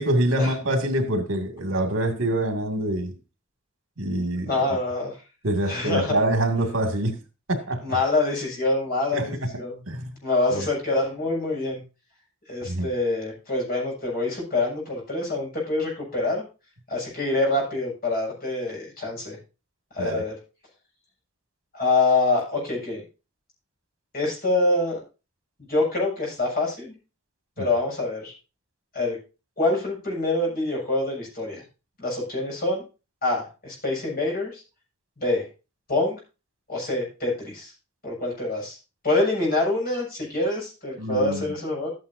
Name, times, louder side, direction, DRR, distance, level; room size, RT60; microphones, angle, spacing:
voice 1, 0.0-3.2 4.0-4.5 5.4-7.2 7.5-7.8 9.1-9.5 9.9-10.2 10.5-10.7 12.7-12.9 20.0-20.3 27.6-27.7 41.0-41.4, right 1 dB, 70° right, 2.3 m, -25 dB
voice 2, 4.5-5.2 5.7-6.2 7.8-9.8 10.2-11.8 12.5-16.4 16.9-19.4 19.9-20.3 21.7-23.0 24.1-25.0 25.7-26.9 27.6-28.3 28.9-29.2 29.6-31.6 32.0-32.8 33.2-34.6 35.2-35.5 35.9-36.2 36.7-37.7 38.0-38.8 39.0-41.9, left 2 dB, 45° left, 6.6 m, -25 dB
13.5 x 9.4 x 2.7 m
head